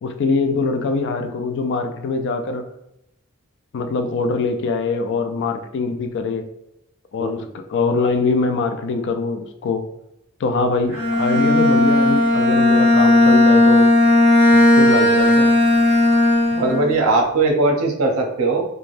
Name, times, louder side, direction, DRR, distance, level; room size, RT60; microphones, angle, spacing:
voice 1, 0.0-2.6 3.7-6.4 7.1-7.4 7.7-9.9 10.4-13.9 14.5-15.5, left 4 dB, 55° left, 7 dB, 0.4 m, -23 dB
Bowed string instrument, 10.9-17.0, left 1 dB, 10° right, 1.3 m, -15 dB
voice 2, 16.5-18.7, right 3 dB, 70° right, 2 dB, 0.6 m, -19 dB
3.2 x 2.1 x 2.5 m, 0.82 s
head